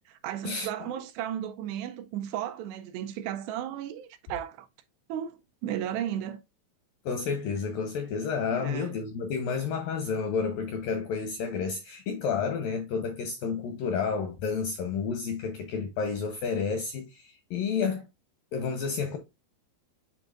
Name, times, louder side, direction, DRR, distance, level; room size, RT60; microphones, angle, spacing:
voice 1, 0.1-4.7 5.1-6.4 8.5-8.9, right 10 dB, 80° right, 2.5 m, -34 dB
voice 2, 7.1-18.0 18.5-19.2, left 5 dB, 80° left, 2.0 m, -30 dB
10.5 x 3.6 x 2.4 m
omnidirectional pair, 5.1 m